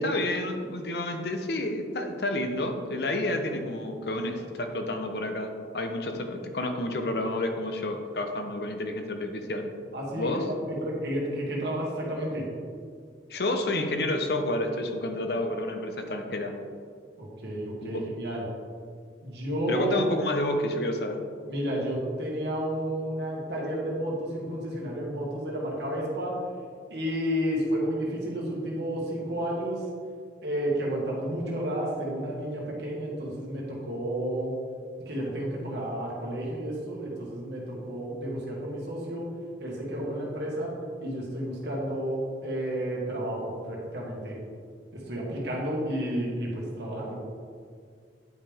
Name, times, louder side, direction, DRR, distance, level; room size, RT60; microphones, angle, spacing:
voice 1, 0.0-9.7 10.2-10.4 13.3-16.5 17.8-18.0 19.7-21.2, left 1 dB, 60° left, 5 dB, 0.8 m, -30 dB
voice 2, 9.9-12.5 17.2-18.4 19.2-19.9 21.5-26.3 26.9-29.8 30.4-34.5 35.1-39.3 39.6-40.7 41.0-44.4 44.9-47.2, right 1 dB, 70° right, -4 dB, 1.8 m, -31 dB
9.4 x 5.3 x 3.6 m, 2.1 s
head